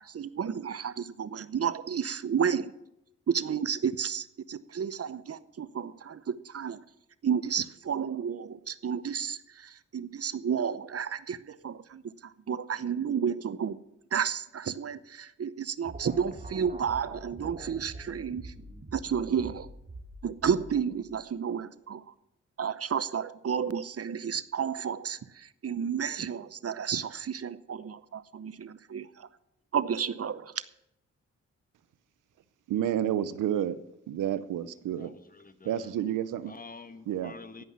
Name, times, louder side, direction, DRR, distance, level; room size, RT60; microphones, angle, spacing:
voice 1, 0.0-2.7 3.3-6.8 7.2-13.8 14.1-18.5 18.9-19.7 20.2-22.0 22.6-29.3 29.7-30.6, right 7 dB, 50° right, 0.8 m, -31 dB
sound 1, 15.8-21.3, right 1 dB, 25° right, 2.2 m, -45 dB
voice 2, 32.7-33.8 34.1-35.1 35.6-36.5 37.1-37.3, right 10 dB, 85° right, 0.8 m, -30 dB
voice 3, 35.0-35.9 36.5-37.6, left 4 dB, 30° left, 1.3 m, -48 dB
15.5 x 5.5 x 9.5 m
supercardioid pair, 50°, 31 cm